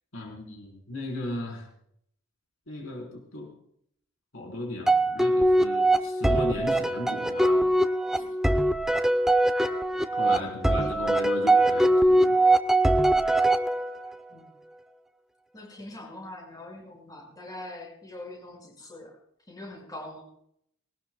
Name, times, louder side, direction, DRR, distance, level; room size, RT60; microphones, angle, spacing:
voice 1, 0.1-1.6 2.7-3.5 4.3-7.8 8.2-8.3 10.1-12.4, left 1 dB, 65° left, 0 dB, 3.9 m, -36 dB
sound 1, 4.9-14.1, right 1 dB, ahead, 0.5 m, -22 dB
voice 2, 10.3-11.2 14.3-14.4 15.5-19.2 19.5-20.3, left 1 dB, 15° left, -1 dB, 5.5 m, -43 dB
21.0 x 19.0 x 2.3 m, 0.70 s
head